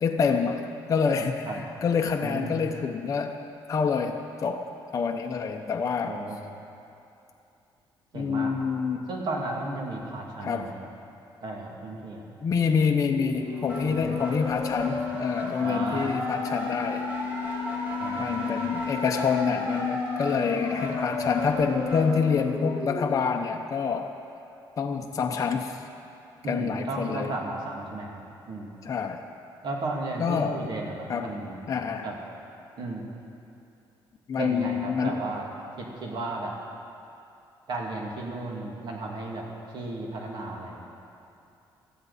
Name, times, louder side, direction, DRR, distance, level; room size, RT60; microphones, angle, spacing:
voice 1, 0.0-3.4 3.7-6.2 8.1-9.0 10.4-10.7 12.4-17.1 18.1-24.1 24.8-25.8 26.5-27.4 28.8-29.2 30.2-30.6 31.1-31.3 31.7-32.1 34.3-35.2, left 6 dB, 40° left, 3 dB, 0.7 m, -27 dB
voice 2, 2.2-2.5 6.0-6.4 8.1-8.6 9.1-10.7 11.4-12.2 13.8-14.2 15.6-16.1 18.0-18.6 26.4-28.2 28.5-28.8 29.6-31.6 32.0-32.2 32.8-33.0 34.4-35.5 35.8-36.5 37.7-39.4 39.7-41.0, right 2 dB, 60° right, -1 dB, 2.5 m, -34 dB
sound 1, 13.1-23.1, left 3 dB, 20° right, 3.9 m, -31 dB
18.0 x 13.5 x 4.2 m, 2.7 s
cardioid pair, 130°, 9 cm